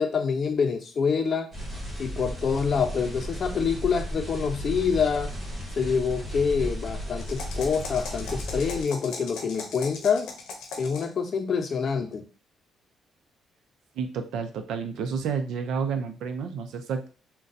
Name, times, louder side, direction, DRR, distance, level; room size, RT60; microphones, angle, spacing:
voice 1, 0.0-1.5 2.0-5.3 5.8-10.3 10.8-12.3, left 6 dB, 50° left, 7 dB, 0.6 m, -26 dB
sound 1, 1.5-8.8, equal, 40° right, 1.5 m, -35 dB
sound 2, 7.2-11.2, left 4 dB, 85° left, 0.7 m, -39 dB
voice 2, 14.0-17.1, right 6 dB, 80° right, 7 dB, 0.5 m, -30 dB
3.8 x 2.2 x 2.6 m, 0.35 s
cardioid pair, 90°, 0 cm